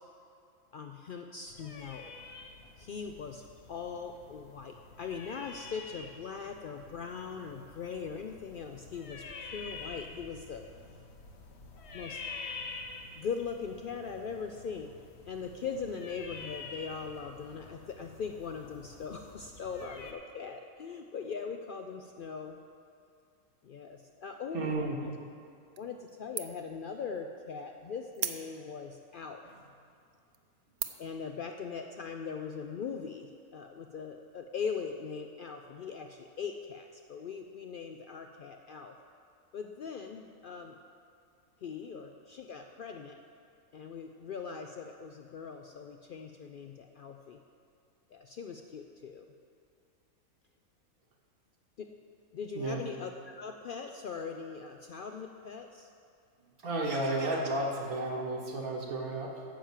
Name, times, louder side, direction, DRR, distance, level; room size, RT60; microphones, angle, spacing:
voice 1, 0.7-2.1 2.8-3.4 3.7-10.7 11.9-12.2 13.1-14.9 15.3-22.6 23.6-25.1 25.8-29.4 31.0-39.0 39.5-40.8 41.6-43.2 43.7-47.4 48.1-49.3 51.8-51.9 52.3-55.9, left 6 dB, 85° left, 4 dB, 0.4 m, -40 dB
sound 1, 1.5-20.1, left 4 dB, 55° left, 1.1 m, -48 dB
voice 2, 24.5-25.0 52.6-52.8 56.6-59.4, right 2 dB, 80° right, -1 dB, 1.9 m, -32 dB
sound 2, 25.8-26.1 26.4-26.8 27.2-27.3 28.1-28.9 29.5-29.6 30.1-30.4 30.8-31.2, right 9 dB, 60° right, 0.7 m, -37 dB
10.0 x 7.2 x 7.3 m, 2.3 s
omnidirectional pair, 1.5 m